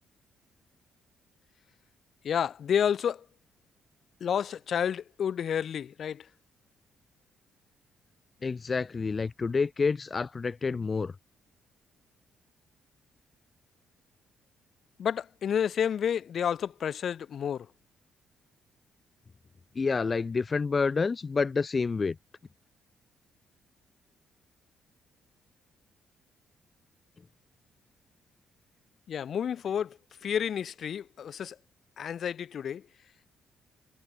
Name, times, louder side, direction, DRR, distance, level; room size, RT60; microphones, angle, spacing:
voice 1, 2.2-3.2 4.2-6.3 15.0-17.7 29.1-31.6 32.0-32.8, left 8 dB, 60° left, 3.1 m, -30 dB
voice 2, 8.4-11.1 19.7-22.2, left 4 dB, 35° left, 3.3 m, -28 dB
cardioid pair, 90°, 0 cm